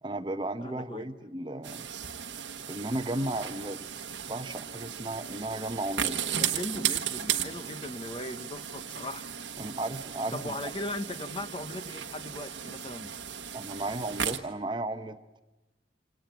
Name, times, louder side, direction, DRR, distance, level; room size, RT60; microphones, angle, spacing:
voice 1, 0.0-1.9 2.7-3.8 4.3-6.2 6.5-6.8 9.6-10.5 13.5-15.4, right 1 dB, 25° right, 9 dB, 0.9 m, -34 dB
voice 2, 0.6-1.1 6.4-9.2 10.3-13.1, left 1 dB, 30° left, 10 dB, 0.9 m, -38 dB
sound 1, 1.6-14.4, right 9 dB, 80° right, 1.3 m, -35 dB
26.5 x 18.0 x 9.3 m, 1.1 s
head